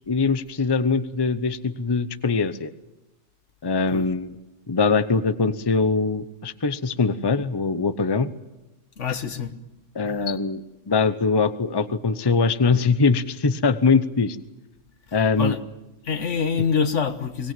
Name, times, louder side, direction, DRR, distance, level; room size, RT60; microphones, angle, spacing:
voice 1, 0.1-2.7 3.6-4.3 4.7-8.3 9.9-14.4 15.1-15.5, left 4 dB, 20° left, 0.8 m, -22 dB
voice 2, 9.0-9.5 15.4-15.6 16.0-17.5, left 6 dB, 70° left, 1.7 m, -25 dB
24.0 x 19.5 x 9.0 m
omnidirectional pair, 1.3 m